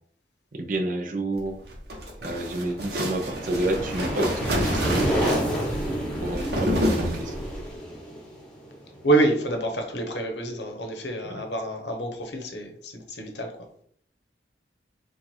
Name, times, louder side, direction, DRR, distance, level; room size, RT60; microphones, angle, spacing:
voice 1, 0.5-1.6 2.2-5.5 6.2-7.5, right 1 dB, 45° right, 5 dB, 0.6 m, -29 dB
sound 1, 1.6-7.6, equal, 60° right, 1.2 m, -29 dB
sound 2, 2.7-9.4, equal, 5° left, 1.0 m, -30 dB
voice 2, 9.0-13.5, right 2 dB, 75° left, 4 dB, 1.0 m, -27 dB
4.4 x 2.4 x 4.4 m, 0.62 s
head